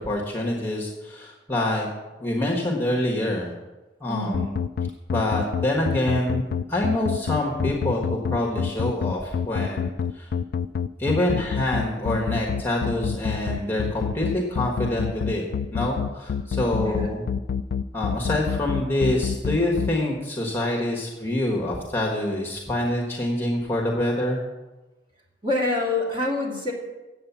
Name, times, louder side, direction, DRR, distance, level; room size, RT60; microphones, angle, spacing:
voice 1, 0.0-1.9 2.2-3.5 4.0-4.6 5.1-10.3 11.0-15.4 15.7-17.2 17.9-24.4, left 1 dB, 10° left, -1 dB, 1.3 m, -26 dB
voice 2, 4.1-4.4 16.8-17.1 25.4-26.7, left 2 dB, 30° right, -3 dB, 2.5 m, -26 dB
sound 1, 4.3-19.9, left 7 dB, 55° left, 0.3 m, -26 dB
8.7 x 7.7 x 7.0 m, 1.1 s
head